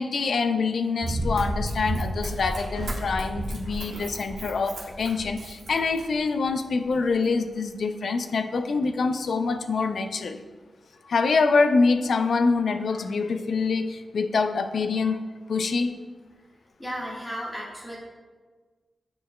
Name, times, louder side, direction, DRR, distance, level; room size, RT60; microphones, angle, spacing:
voice 1, 0.0-10.4 11.1-15.9, left 4 dB, 65° left, 8 dB, 0.4 m, -25 dB
Run, 1.0-6.3 6.9-7.0, right 1 dB, 75° right, 1.1 m, -32 dB
voice 2, 16.8-18.0, equal, 10° left, -5 dB, 1.5 m, -34 dB
10.0 x 4.4 x 2.2 m, 1.4 s
wide cardioid pair, 140°, 0 cm